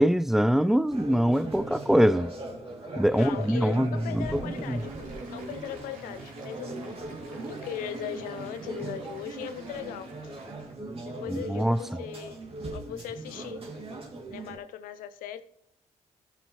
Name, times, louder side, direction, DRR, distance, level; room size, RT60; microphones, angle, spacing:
voice 1, 0.0-2.3 3.0-4.8 11.3-11.8, equal, ahead, 0.4 m, -24 dB
sound 1, 0.9-14.6, right 2 dB, 40° right, 2.6 m, -39 dB
voice 2, 3.1-6.8 7.4-10.1 11.0-12.4 12.7-13.6 14.3-15.4, left 10 dB, 85° left, 0.6 m, -39 dB
Applause, 4.0-10.8, right 3 dB, 80° right, 3.0 m, -52 dB
15.0 x 7.0 x 3.1 m
supercardioid pair, 55°, 14 cm